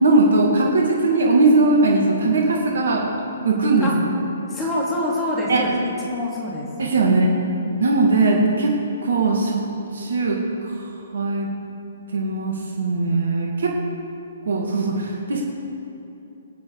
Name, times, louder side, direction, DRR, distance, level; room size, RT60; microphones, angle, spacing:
voice 1, 0.0-3.1 3.4-3.9 5.5-5.7 6.8-7.3 7.8-8.7 9.0-9.6 9.9-10.4 11.1-11.5 12.1-13.7 14.5-15.4, right 3 dB, 70° right, -1 dB, 2.3 m, -19 dB
voice 2, 4.5-6.7 7.0-7.3, left 1 dB, 15° left, -4 dB, 3.0 m, -26 dB
22.0 x 8.6 x 4.9 m, 2.8 s
figure-of-eight pair, 130°, 0 cm